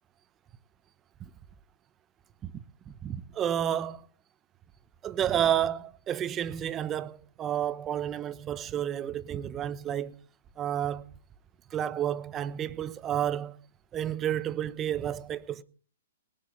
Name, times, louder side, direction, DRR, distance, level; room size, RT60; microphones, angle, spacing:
voice 1, 2.9-4.1 5.0-10.2 10.6-11.0 11.7-13.6 13.9-15.6, right 10 dB, 20° right, 0.9 m, -30 dB
20.0 x 10.5 x 4.0 m
hypercardioid pair, 130°, 0 cm